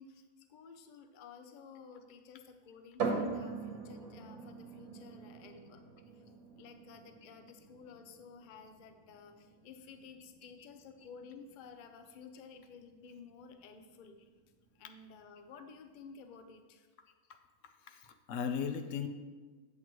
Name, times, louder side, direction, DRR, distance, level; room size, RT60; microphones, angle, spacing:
voice 1, 0.0-5.8 6.1-6.3 6.5-14.2 14.8-16.9, left 5 dB, 80° left, 7 dB, 0.4 m, -53 dB
sound 1, 3.0-16.5, right 4 dB, 65° right, 1.5 m, -44 dB
voice 2, 17.9-19.1, left 7 dB, 65° left, 7 dB, 0.9 m, -36 dB
8.3 x 7.5 x 3.0 m, 1.4 s
omnidirectional pair, 1.6 m